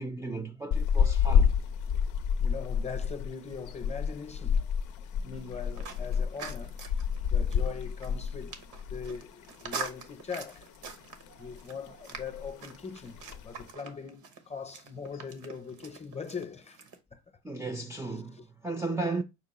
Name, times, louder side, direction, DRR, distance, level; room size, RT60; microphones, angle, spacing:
voice 1, 0.0-1.6 17.4-19.2, right 3 dB, 10° right, 0.5 m, -35 dB
sound 1, 0.7-9.2 9.5-9.7 10.1-10.9 11.3-11.6 11.9-12.0 12.1-12.6 13.1-13.6, left 7 dB, 80° left, 0.5 m, -28 dB
voice 2, 2.4-4.7 5.1-8.6 8.9-10.7 11.4-17.2 18.0-18.5, left 6 dB, 20° left, 0.7 m, -41 dB
sound 2, 5.3-17.0, right 5 dB, 80° right, 1.0 m, -45 dB
5.7 x 2.2 x 4.1 m
cardioid pair, 90°, 30 cm